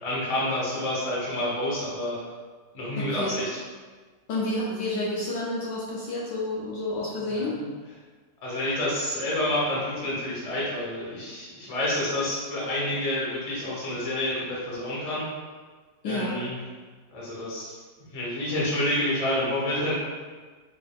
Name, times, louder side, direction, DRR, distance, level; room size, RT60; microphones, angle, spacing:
voice 1, 0.0-2.2 2.7-3.6 7.3-7.7 8.4-15.2 16.0-16.6 17.1-17.8 18.1-19.9, left 1 dB, 45° left, -7 dB, 0.4 m, -28 dB
voice 2, 3.0-3.4 4.3-7.6 16.0-16.4, left 2 dB, 75° left, -5 dB, 1.0 m, -30 dB
3.9 x 2.3 x 3.3 m, 1.4 s
omnidirectional pair, 2.3 m